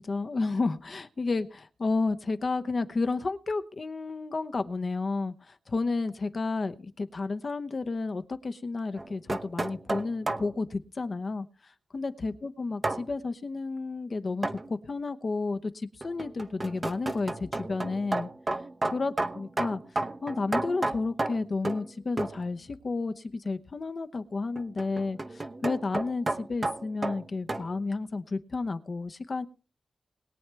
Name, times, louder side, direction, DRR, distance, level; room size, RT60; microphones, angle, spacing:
voice 1, 0.0-18.3 18.9-19.8 20.2-29.5, left 3 dB, 40° left, 0.9 m, -31 dB
sound 1, 9.0-10.5 12.8-13.1 14.4-14.7 16.0-21.9 22.2-22.4 24.6-27.7, right 2 dB, 30° right, 0.9 m, -32 dB
21.5 x 8.7 x 3.4 m
wide cardioid pair, 115°, 0 cm